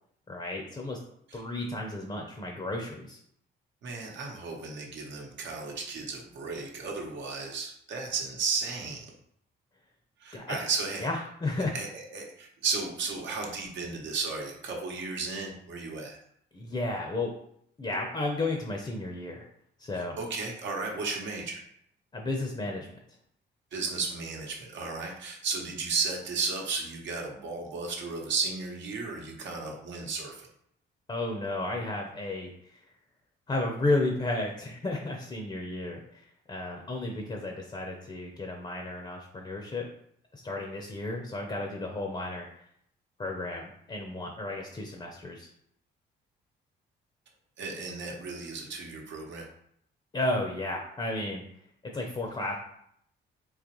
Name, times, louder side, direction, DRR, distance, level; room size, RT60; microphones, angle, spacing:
voice 1, 0.3-1.0 1.3-3.2 10.3-10.6 11.0-11.7 16.5-17.3 17.8-19.5 19.8-20.2 22.1-22.9 31.1-32.8 33.5-39.8 40.3-42.5 43.2-45.5 50.1-51.4 51.9-52.6, left 2 dB, 25° left, 1 dB, 0.6 m, -33 dB
voice 2, 3.8-9.1 10.2-11.1 11.7-16.2 19.9-21.6 23.7-30.5 47.6-49.5, right 4 dB, 70° right, 1 dB, 0.9 m, -34 dB
3.9 x 2.9 x 3.0 m, 0.71 s
cardioid pair, 90°, 20 cm